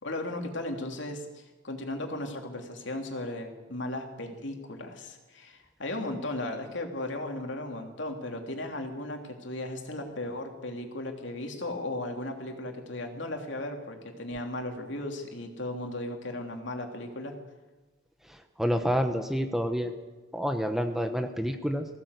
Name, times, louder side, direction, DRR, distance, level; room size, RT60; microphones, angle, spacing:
voice 1, 0.0-17.3, left 1 dB, 70° left, 3 dB, 3.0 m, -36 dB
voice 2, 18.3-19.9 20.3-21.9, equal, ahead, 6 dB, 1.0 m, -28 dB
20.5 x 16.5 x 8.2 m, 1.2 s
head